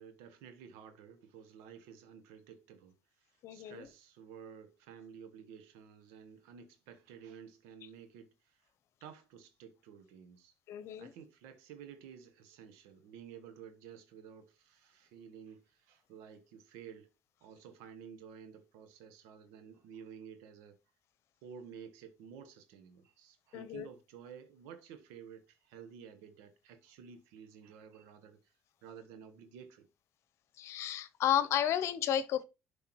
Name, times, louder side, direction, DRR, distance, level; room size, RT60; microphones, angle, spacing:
voice 1, 0.0-8.7 9.0-10.5 11.0-17.1 17.4-20.8 21.4-28.5 28.8-29.9, right 7 dB, 85° right, 1.2 m, -52 dB
voice 2, 3.4-3.9 10.7-11.1 23.5-23.9 30.6-32.4, left 10 dB, 70° left, 0.8 m, -32 dB
11.0 x 5.3 x 3.0 m
supercardioid pair, 65°, 5 cm